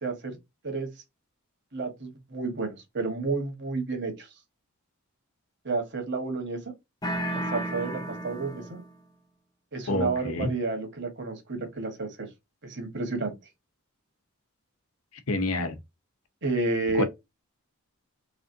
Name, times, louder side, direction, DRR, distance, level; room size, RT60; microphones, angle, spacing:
voice 1, 0.0-0.4 0.6-0.9 1.7-4.3 5.6-6.7 7.3-8.8 9.7-12.3 12.6-13.3 16.4-17.0, right 3 dB, 50° right, 1.4 m, -31 dB
sound 1, 7.0-9.0, right 1 dB, 20° left, 0.7 m, -33 dB
voice 2, 9.9-10.5 15.3-15.8 16.9-17.0, left 2 dB, 75° left, 0.9 m, -27 dB
3.7 x 3.3 x 2.6 m
head